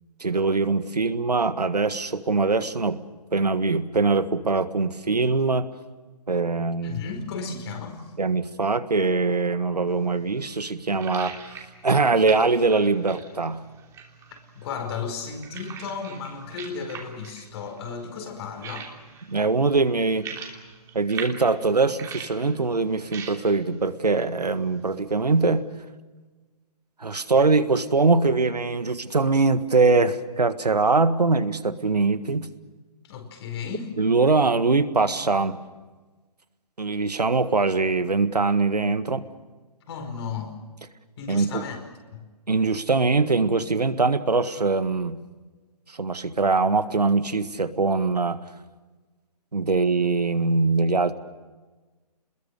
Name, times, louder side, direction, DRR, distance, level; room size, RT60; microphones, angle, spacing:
voice 1, 0.2-3.0 3.3-5.7 6.3-7.0 8.2-11.3 11.8-13.6 19.3-20.2 20.9-25.7 27.0-32.5 34.0-35.6 36.8-39.2 41.3-41.6 42.5-45.2 46.0-48.4 49.5-51.1, right 3 dB, 90° right, 12 dB, 1.7 m, -22 dB
voice 2, 6.8-8.1 14.3-19.0 33.0-33.9 39.9-40.5 41.2-41.8 42.1-42.3, left 5 dB, 40° left, 5 dB, 4.9 m, -34 dB
sound 1, 9.9-25.6, right 6 dB, 15° right, 3.1 m, -43 dB
29.5 x 21.5 x 6.6 m, 1.3 s
figure-of-eight pair, 140°, 20 cm